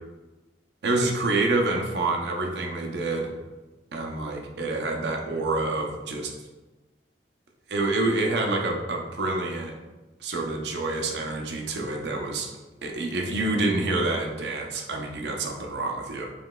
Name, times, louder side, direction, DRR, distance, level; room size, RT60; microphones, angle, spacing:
voice 1, 0.8-3.3 3.9-6.3 7.7-9.7 10.2-12.5 12.8-16.3, right 2 dB, 70° right, 2 dB, 0.6 m, -27 dB
5.0 x 3.1 x 2.2 m, 1.2 s
head